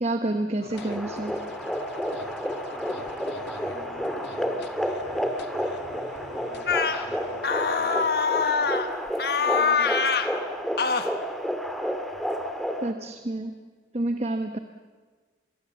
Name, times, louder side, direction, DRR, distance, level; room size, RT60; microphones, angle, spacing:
voice 1, 0.0-1.3 12.8-13.5 13.9-14.6, right 2 dB, 40° right, 7 dB, 1.0 m, -28 dB
sound 1, 0.6-8.9, left 2 dB, 80° left, 1.8 m, -44 dB
sound 2, 0.7-12.9, equal, ahead, 1.9 m, -31 dB
voice 2, 2.6-4.6 5.1-7.9 8.3-10.5, right 1 dB, 55° right, 3 dB, 5.4 m, -49 dB
sound 3, 6.7-7.0 7.4-8.9 9.2-10.3 10.8-11.1, left 5 dB, 65° left, 1.5 m, -24 dB
25.0 x 22.0 x 7.4 m, 1.4 s
head